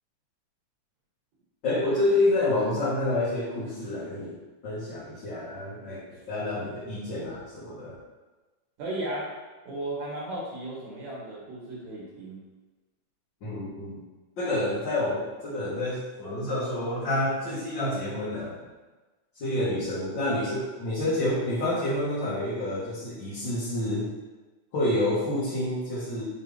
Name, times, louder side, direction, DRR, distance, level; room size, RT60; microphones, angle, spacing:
voice 1, 1.6-4.4 4.6-8.0 13.4-14.0 14.4-18.6 19.3-24.1 24.7-26.2, left 1 dB, 45° left, -11 dB, 1.9 m, -28 dB
voice 2, 8.8-9.3 9.6-12.4, right 1 dB, 70° right, -5 dB, 3.1 m, -35 dB
9.3 x 3.6 x 3.3 m, 1.2 s
omnidirectional pair, 3.4 m